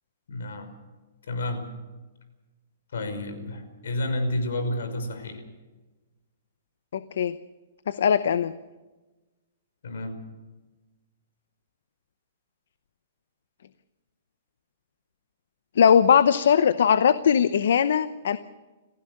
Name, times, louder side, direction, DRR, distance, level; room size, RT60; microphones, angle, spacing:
voice 1, 0.3-0.7 1.3-1.7 2.9-5.4 9.8-10.2, left 1 dB, 85° left, 8 dB, 5.5 m, -30 dB
voice 2, 6.9-7.3 7.9-8.5 15.8-18.4, left 7 dB, 70° left, 13 dB, 0.8 m, -20 dB
29.0 x 15.5 x 6.6 m, 1.2 s
hypercardioid pair, 170°, 0 cm